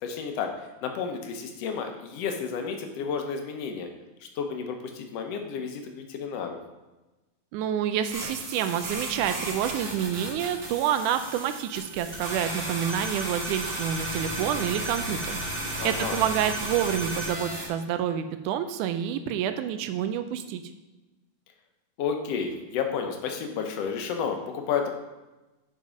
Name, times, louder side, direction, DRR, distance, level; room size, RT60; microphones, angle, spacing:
voice 1, 0.0-3.9 4.4-6.6 15.8-16.2 22.0-24.9, left 6 dB, 70° left, 4 dB, 1.6 m, -31 dB
voice 2, 7.5-20.6, right 9 dB, 80° right, 9 dB, 2.1 m, -28 dB
sound 1, 8.1-17.7, right 1 dB, 50° right, 0.7 m, -34 dB
7.4 x 5.3 x 5.1 m, 1.1 s
omnidirectional pair, 3.7 m